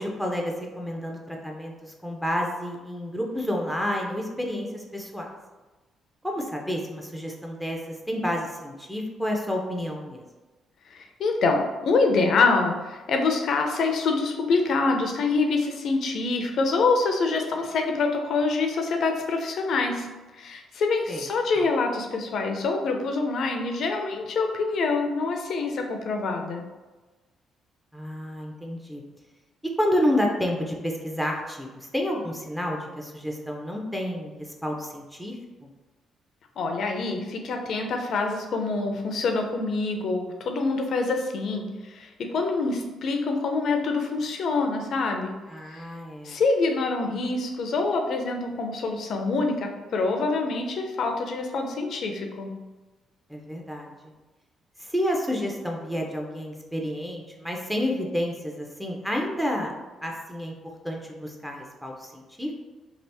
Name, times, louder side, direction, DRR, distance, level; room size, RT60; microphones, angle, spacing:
voice 1, 0.0-5.3 6.2-10.2 21.1-21.2 21.6-21.7 27.9-29.0 29.8-35.7 45.5-46.4 53.3-53.9 54.8-59.7 60.0-60.5 60.8-62.5, equal, 5° right, -1 dB, 0.5 m, -30 dB
voice 2, 10.9-20.1 20.4-26.6 36.6-45.3 45.7-45.8 46.2-52.5, left 3 dB, 65° left, 3 dB, 0.5 m, -26 dB
2.8 x 2.5 x 3.3 m, 1.2 s
cardioid pair, 90°, 0 cm